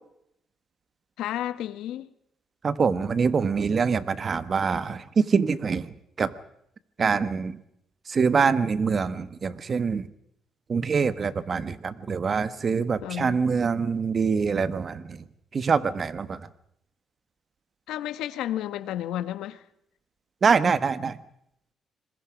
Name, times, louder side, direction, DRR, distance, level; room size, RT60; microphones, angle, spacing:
voice 1, 1.2-2.1 13.0-13.4 17.9-19.6, left 12 dB, 90° left, 1.1 m, -32 dB
voice 2, 2.6-5.8 6.2-6.3 7.0-7.6 8.1-10.0 10.7-15.2 15.5-16.4 20.4-21.1, right 5 dB, 45° right, 1.3 m, -24 dB
26.5 x 21.5 x 5.1 m
cardioid pair, 90°, 0 cm